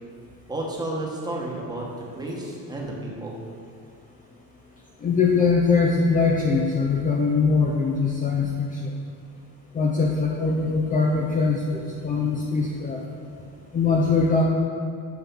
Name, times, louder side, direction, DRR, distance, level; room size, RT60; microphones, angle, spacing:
voice 1, 0.5-3.4, right 1 dB, 10° right, -2 dB, 1.1 m, -32 dB
voice 2, 5.0-8.9 9.7-13.0 13.7-14.4, left 4 dB, 25° left, -1 dB, 0.5 m, -22 dB
7.4 x 5.8 x 5.5 m, 2.4 s
cardioid pair, 165°, 35 cm